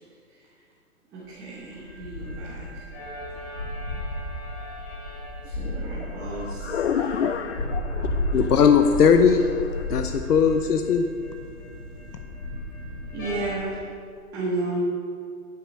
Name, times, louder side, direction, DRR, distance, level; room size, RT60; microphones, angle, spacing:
voice 1, 1.1-2.8 5.4-7.1 13.1-13.8 14.3-14.8, right 2 dB, 10° right, -8 dB, 1.0 m, -33 dB
sound 1, 1.4-13.5, left 1 dB, 15° left, 0.8 m, -33 dB
voice 2, 5.6-8.6 9.7-10.0, left 7 dB, 50° left, 9 dB, 0.5 m, -30 dB
voice 3, 8.3-9.4 9.9-11.1, left 6 dB, 80° left, 7 dB, 0.9 m, -18 dB
11.0 x 9.2 x 5.4 m, 2.3 s
hypercardioid pair, 165°, 45 cm